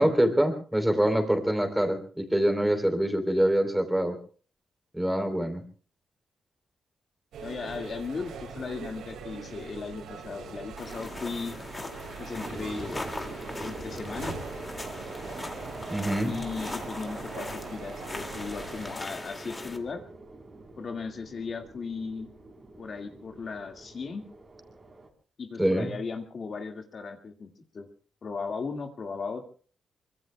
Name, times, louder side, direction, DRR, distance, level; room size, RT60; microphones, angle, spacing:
voice 1, 0.0-4.2 4.9-5.6 15.9-16.3 25.6-25.9, right 1 dB, 5° right, 6 dB, 3.3 m, -25 dB
sound 1, 7.3-19.0, right 5 dB, 90° right, 7.3 m, -42 dB
voice 2, 7.4-11.6 12.2-13.0 13.6-14.4 16.2-20.0 20.8-22.3 22.8-24.2 25.4-27.9 28.2-29.4, left 4 dB, 45° left, 5 dB, 1.9 m, -37 dB
sound 2, 10.8-19.8, left 2 dB, 20° left, 2.2 m, -40 dB
sound 3, 12.4-25.1, right 2 dB, 25° right, 3.5 m, -44 dB
25.5 x 24.0 x 2.2 m, 0.42 s
wide cardioid pair, 145°, 0 cm